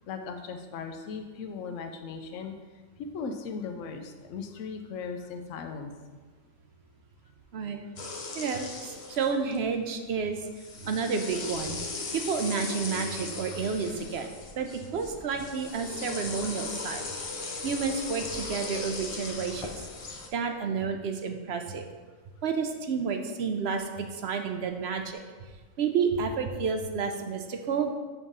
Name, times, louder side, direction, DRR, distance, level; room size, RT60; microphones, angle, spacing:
voice 1, 0.1-2.5 3.0-5.9, left 5 dB, 75° left, 5 dB, 1.0 m, -38 dB
sound 1, 8.0-9.7 10.5-20.3, left 3 dB, 50° left, 0.4 m, -38 dB
voice 2, 8.3-10.4 10.8-11.8 12.1-17.0 17.6-19.8 20.3-21.9 22.4-25.2 25.8-27.9, right 5 dB, 60° right, 5 dB, 0.8 m, -30 dB
7.1 x 3.6 x 5.4 m, 1.4 s
omnidirectional pair, 1.4 m